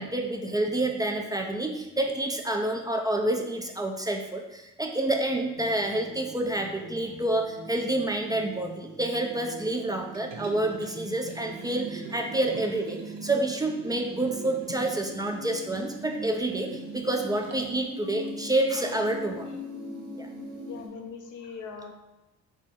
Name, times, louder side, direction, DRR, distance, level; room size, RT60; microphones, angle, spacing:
voice 1, 0.0-19.6 20.2-20.3, right 1 dB, 10° right, 3 dB, 0.4 m, -28 dB
sound 1, 5.5-20.9, equal, 80° right, 1.2 m, -42 dB
Liquid, 10.1-17.8 18.2-18.3, right 5 dB, 60° right, 0.7 m, -45 dB
voice 2, 20.7-21.9, left 5 dB, 80° left, 3 dB, 0.7 m, -41 dB
3.6 x 3.0 x 4.1 m, 0.98 s
cardioid pair, 90°, 30 cm